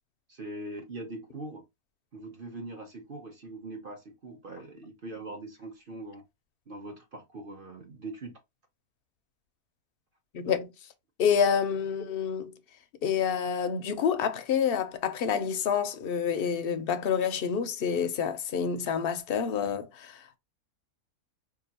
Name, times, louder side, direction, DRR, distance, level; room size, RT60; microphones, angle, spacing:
voice 1, 0.3-1.6 2.1-6.2 6.7-8.3, right 2 dB, 45° right, 0.8 m, -42 dB
voice 2, 10.3-10.7 11.2-12.5 13.0-20.4, left 7 dB, 60° left, 0.6 m, -28 dB
4.6 x 2.5 x 2.8 m
omnidirectional pair, 1.5 m